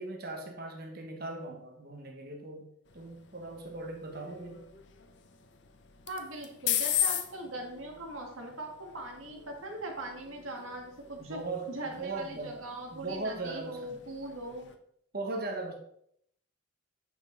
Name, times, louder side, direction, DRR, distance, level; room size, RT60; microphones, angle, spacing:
voice 1, 0.0-2.7 2.9-4.6 11.2-12.6 12.9-14.0 15.1-15.7, right 2 dB, 50° right, 2 dB, 1.4 m, -39 dB
sound 1, 2.9-14.8, left 10 dB, 60° left, 0.7 m, -39 dB
voice 2, 6.1-11.4 11.7-14.7, right 2 dB, 85° right, 2 dB, 1.9 m, -40 dB
8.5 x 5.9 x 3.9 m, 0.71 s
head